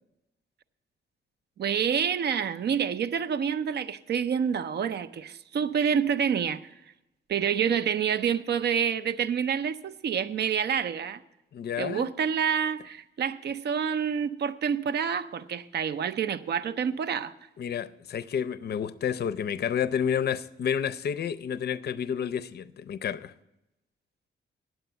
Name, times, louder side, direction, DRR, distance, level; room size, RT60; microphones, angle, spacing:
voice 1, 1.6-6.6 7.3-11.2 11.8-17.3, right 7 dB, 60° right, 0.5 m, -28 dB
voice 2, 11.5-12.1 17.6-23.3, left 8 dB, 55° left, 0.5 m, -30 dB
9.4 x 7.9 x 8.0 m
wide cardioid pair, 175°, 20 cm